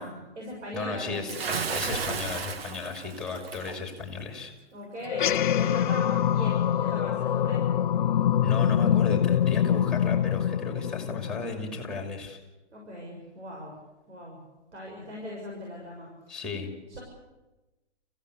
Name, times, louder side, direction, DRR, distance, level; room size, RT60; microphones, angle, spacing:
voice 1, 0.0-1.4 4.7-7.6 12.7-13.7 14.1-14.4 14.7-16.1, equal, 90° right, -1 dB, 6.9 m, -39 dB
voice 2, 0.7-4.5 8.4-12.4 16.3-16.7, left 4 dB, ahead, 4 dB, 2.7 m, -34 dB
Bathtub (filling or washing) / Splash splatter, 1.3-3.8, right 5 dB, 60° right, 1.9 m, -33 dB
sound 1, 5.0-11.8, left 10 dB, 45° left, 0.7 m, -25 dB
28.0 x 15.5 x 8.4 m, 1.1 s
hypercardioid pair, 160°, 34 cm